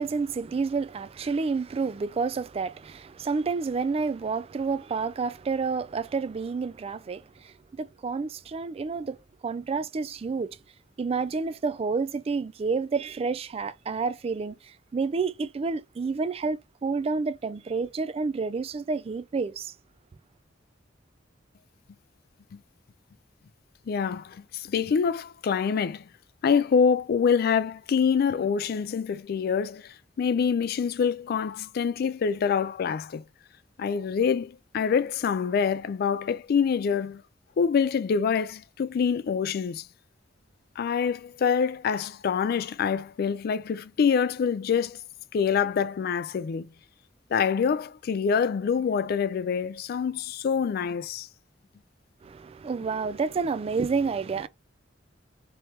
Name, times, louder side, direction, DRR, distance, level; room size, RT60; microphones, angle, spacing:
voice 1, 0.0-9.2 9.4-10.6 11.0-19.7 52.2-54.5, right 4 dB, 30° right, 0.3 m, -29 dB
voice 2, 23.9-26.0 26.4-33.2 33.8-37.2 37.6-39.9 40.8-45.0 45.3-46.7 47.3-51.3, left 6 dB, 55° left, 0.3 m, -26 dB
3.1 x 2.9 x 3.2 m
head